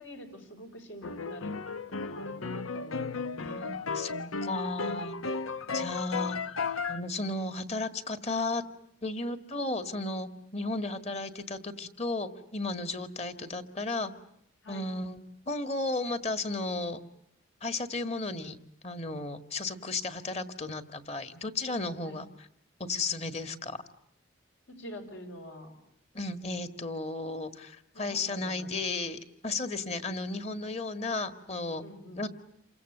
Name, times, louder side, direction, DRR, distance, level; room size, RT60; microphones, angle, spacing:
voice 1, 0.0-1.5 2.0-3.7 5.7-6.0 14.6-14.9 22.0-22.2 24.7-25.7 27.9-28.7 31.8-32.2, equal, 70° left, 4 dB, 5.8 m, -46 dB
sound 1, 1.0-7.0, left 4 dB, 90° left, 1.0 m, -34 dB
voice 2, 3.2-5.1 5.7-6.4 6.9-8.6 9.0-14.1 14.7-15.2 15.5-17.0 17.6-18.6 18.8-22.5 22.8-23.8 26.1-31.8 32.2-32.3, left 2 dB, 30° left, 9 dB, 1.8 m, -34 dB
29.0 x 25.0 x 7.9 m, 0.73 s
head